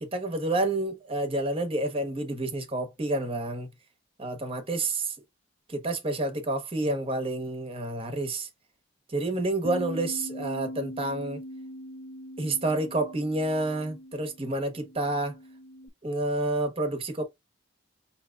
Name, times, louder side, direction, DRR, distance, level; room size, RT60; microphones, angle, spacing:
voice 1, 0.0-3.7 4.2-5.1 5.7-8.5 9.1-11.4 12.4-15.4 16.0-17.2, right 2 dB, 30° right, 1.0 m, -29 dB
Bass guitar, 9.6-15.9, equal, 60° left, 0.7 m, -41 dB
5.6 x 2.9 x 2.3 m
head